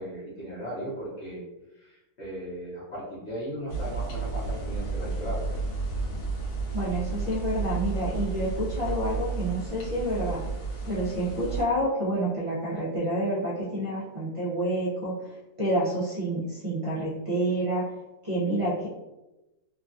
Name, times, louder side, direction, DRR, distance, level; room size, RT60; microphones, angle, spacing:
voice 1, 0.0-1.4 1.7-5.6, equal, 50° left, -8 dB, 1.0 m, -37 dB
sound 1, 3.7-11.6, right 4 dB, 75° left, 1.3 m, -32 dB
voice 2, 6.7-10.4 10.8-17.8 18.2-18.9, right 1 dB, 60° right, -10 dB, 0.3 m, -28 dB
3.0 x 2.3 x 2.5 m, 1.0 s
omnidirectional pair, 1.7 m